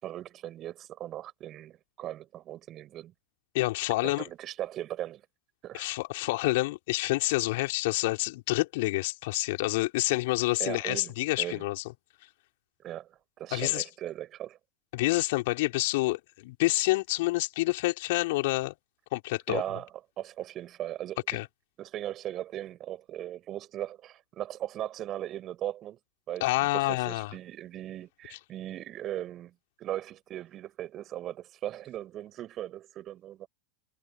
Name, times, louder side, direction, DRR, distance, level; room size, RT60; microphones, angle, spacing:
voice 1, 0.0-3.1 4.0-5.2 5.6-5.9 10.6-11.6 12.8-14.6 19.5-19.9 20.2-21.4 21.8-26.0 26.3-33.5, right 12 dB, 30° right, 6.4 m, -38 dB
voice 2, 3.5-4.3 5.7-11.8 13.5-13.9 14.9-18.7 19.1-19.6 21.3-21.5 26.4-27.3 28.3-28.4, left 21 dB, 50° left, 4.4 m, -28 dB
figure-of-eight pair, 90°, 0 cm